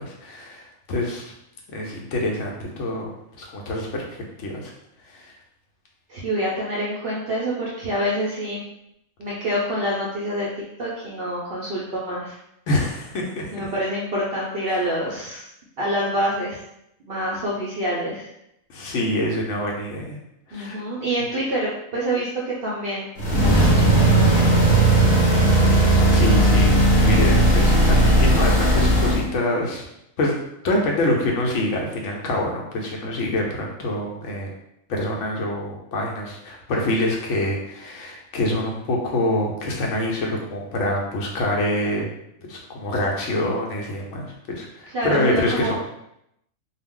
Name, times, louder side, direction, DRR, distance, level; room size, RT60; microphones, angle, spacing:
voice 1, 0.0-1.3 1.7-3.1 3.4-4.7 5.1-5.3 12.7-13.7 18.7-20.2 20.5-20.8 25.9-26.7 27.0-29.8 30.2-30.4 30.6-34.5 34.9-42.1 42.5-45.8, left 1 dB, 70° left, -1 dB, 0.9 m, -26 dB
voice 2, 6.1-8.6 9.2-10.5 10.8-12.4 13.5-15.4 15.8-16.6 17.1-18.3 20.5-23.1 23.4-24.5 44.9-45.8, equal, 65° right, -5 dB, 0.6 m, -26 dB
sound 1, 23.2-29.3, right 1 dB, 40° left, 0.9 m, -16 dB
2.3 x 2.0 x 3.6 m, 0.79 s
omnidirectional pair, 1.4 m